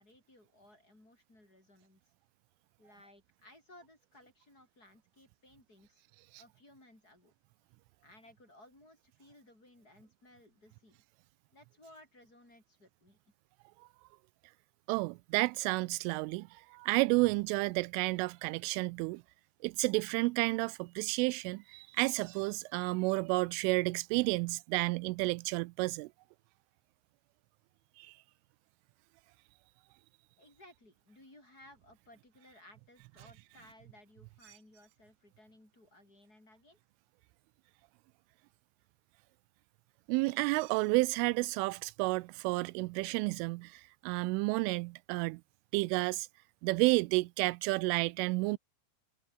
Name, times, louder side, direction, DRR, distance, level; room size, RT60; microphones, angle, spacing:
voice 1, 0.0-2.0 2.8-6.0 6.4-7.3 8.0-11.0 11.5-13.2 30.4-36.8, left 1 dB, 20° left, 7.3 m, -59 dB
voice 2, 14.9-19.2 19.6-26.1 28.0-28.1 40.1-45.4 45.7-46.3 46.6-48.6, right 24 dB, 85° right, 3.1 m, -31 dB
omnidirectional pair, 5.6 m